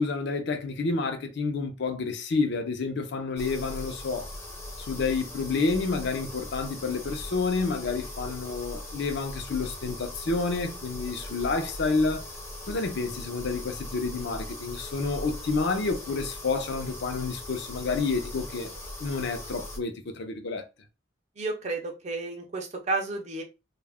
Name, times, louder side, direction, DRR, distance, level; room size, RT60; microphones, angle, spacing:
voice 1, 0.0-4.3 4.8-12.2 12.7-18.7 19.0-20.6, left 4 dB, 60° left, 0.5 m, -29 dB
sound 1, 3.4-19.8, left 1 dB, 15° left, 0.5 m, -40 dB
voice 2, 21.4-23.4, right 3 dB, 35° right, 0.5 m, -31 dB
2.3 x 2.0 x 3.4 m
head